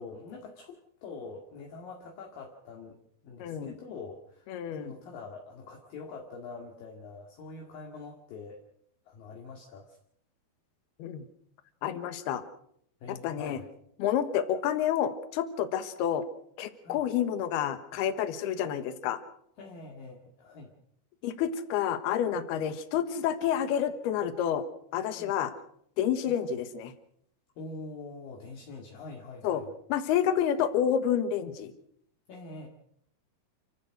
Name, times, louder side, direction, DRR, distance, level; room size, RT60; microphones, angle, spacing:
voice 1, 0.0-3.0 3.2-8.6 9.1-10.0 13.0-13.7 16.8-17.0 19.6-20.7 25.1-25.4 27.6-29.7 32.3-32.7, left 3 dB, 60° left, 1 dB, 3.7 m, -44 dB
voice 2, 3.4-3.7 4.5-4.9 11.0-11.2 11.8-12.4 13.1-13.6 14.0-16.2 16.6-19.2 21.2-24.6 24.9-25.5 26.0-26.9 29.4-29.6 29.9-31.7, left 9 dB, 80° left, 9 dB, 3.3 m, -29 dB
29.0 x 15.5 x 6.4 m, 0.70 s
omnidirectional pair, 4.7 m